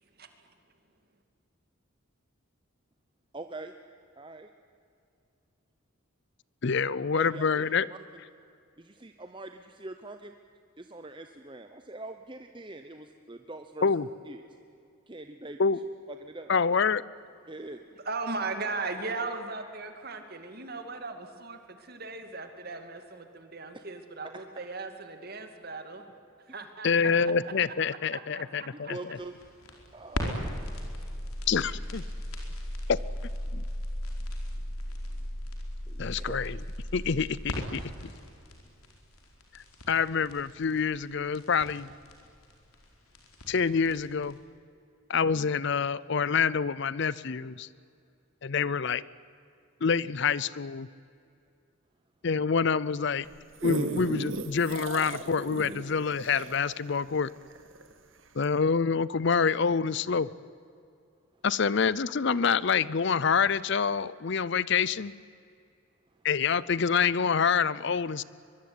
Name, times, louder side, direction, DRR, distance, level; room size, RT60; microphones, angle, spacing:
voice 1, 3.3-3.7 4.2-4.5 7.2-7.6 8.8-10.3 10.8-13.9 14.3-14.4 15.1-15.6 16.2-16.5 17.5-17.8 28.9-29.3 29.9-30.5 35.9-36.4, right 2 dB, 20° right, 7 dB, 0.9 m, -43 dB
voice 2, 6.6-7.9 13.8-14.1 15.6-15.8 16.5-17.0 26.8-29.2 31.5-32.0 33.5-33.6 36.0-36.6 36.9-37.8 39.5-41.9 43.5-44.4 45.1-47.7 48.4-49.0 49.8-50.9 52.2-53.3 53.6-57.3 58.4-60.3 61.4-65.1 66.2-68.2, left 5 dB, 55° left, 20 dB, 0.5 m, -27 dB
voice 3, 18.0-26.0 26.5-27.3 27.9-28.9, right 3 dB, 45° right, 7 dB, 2.5 m, -38 dB
sound 1, 29.2-44.3, equal, 85° left, 4.7 m, -37 dB
sound 2, 53.2-57.9 58.4-58.5, right 2 dB, 65° right, 1.9 m, -35 dB
23.0 x 23.0 x 9.7 m, 2.5 s
head